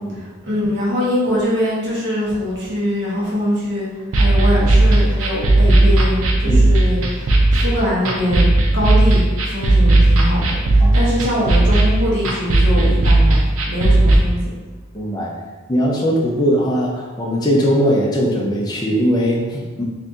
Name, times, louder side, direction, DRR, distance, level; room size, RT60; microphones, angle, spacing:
voice 1, 0.1-14.4, left 1 dB, 55° right, -7 dB, 1.0 m, -23 dB
sound 1, 4.1-14.2, right 2 dB, 85° right, 0.5 m, -15 dB
voice 2, 10.8-11.1 14.9-15.3 15.7-19.8, equal, 20° left, -3 dB, 0.5 m, -19 dB
2.6 x 2.6 x 3.5 m, 1.3 s
head